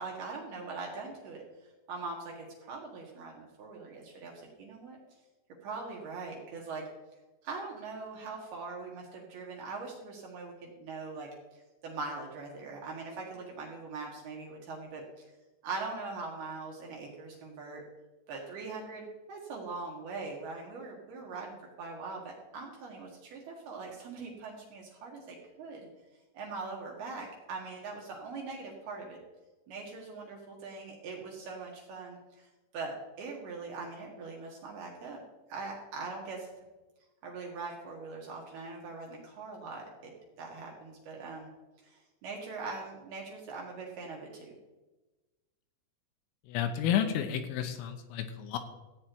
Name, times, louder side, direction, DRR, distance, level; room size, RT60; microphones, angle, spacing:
voice 1, 0.0-1.4 1.9-5.0 5.6-6.8 7.4-11.3 11.8-15.0 15.6-17.8 18.3-25.9 26.3-29.2 29.7-32.5 32.7-35.2 35.5-36.5 37.2-40.1 40.4-41.5 41.8-44.5, right 3 dB, 60° right, -1 dB, 3.0 m, -41 dB
voice 2, 46.5-48.6, left 9 dB, 85° left, 6 dB, 3.4 m, -31 dB
14.5 x 8.6 x 4.6 m, 1.1 s
omnidirectional pair, 5.9 m